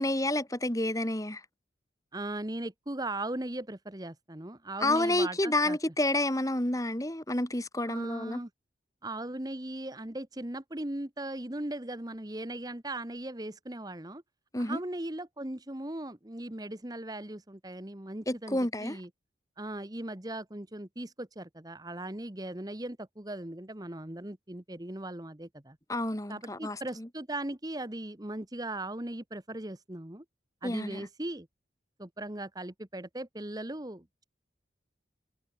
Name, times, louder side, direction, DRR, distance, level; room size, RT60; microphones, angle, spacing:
voice 1, 0.0-1.4 4.8-8.4 14.5-14.8 18.3-19.0 25.9-27.1 30.6-31.0, left 1 dB, 20° left, 2.4 m, -29 dB
voice 2, 2.1-5.8 7.9-8.5 9.0-14.2 14.6-19.1 19.6-25.8 26.3-30.2 30.6-31.5 32.0-34.2, right 1 dB, 20° right, 1.3 m, -38 dB
head